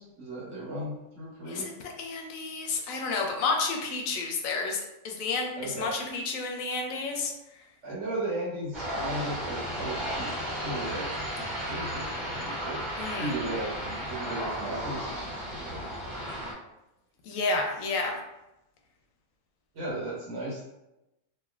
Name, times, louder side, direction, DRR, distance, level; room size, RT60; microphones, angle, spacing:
voice 1, 0.0-1.7 5.6-5.9 7.8-12.8 13.2-15.1 15.5-15.8 19.7-20.6, right 1 dB, 65° right, -6 dB, 1.1 m, -36 dB
voice 2, 1.5-7.3 13.0-13.3 17.2-18.2, left 3 dB, 90° left, 2 dB, 1.0 m, -31 dB
sound 1, 8.7-16.5, equal, 40° right, 1.0 m, -34 dB
3.1 x 2.4 x 2.4 m, 0.93 s
omnidirectional pair, 1.4 m